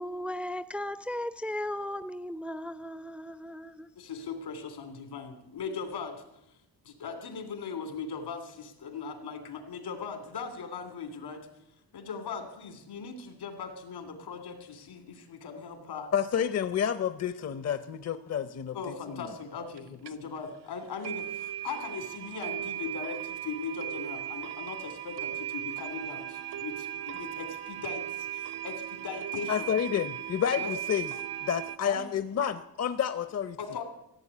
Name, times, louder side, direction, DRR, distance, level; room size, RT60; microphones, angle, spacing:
voice 1, 0.0-3.9, left 1 dB, 5° right, 0.5 m, -36 dB
voice 2, 4.0-6.2 6.8-11.5 11.9-16.1 18.7-29.7 30.6-30.7 31.8-32.0 33.6-33.8, left 5 dB, 85° left, 3.0 m, -39 dB
voice 3, 16.1-19.3 29.5-31.1 31.4-33.6, left 8 dB, 40° left, 0.7 m, -30 dB
sound 1, 19.8-19.9 20.1-20.2 20.5-20.6 21.0-31.8, right 11 dB, 80° right, 0.9 m, -37 dB
16.0 x 7.8 x 9.9 m
cardioid pair, 105°, 39 cm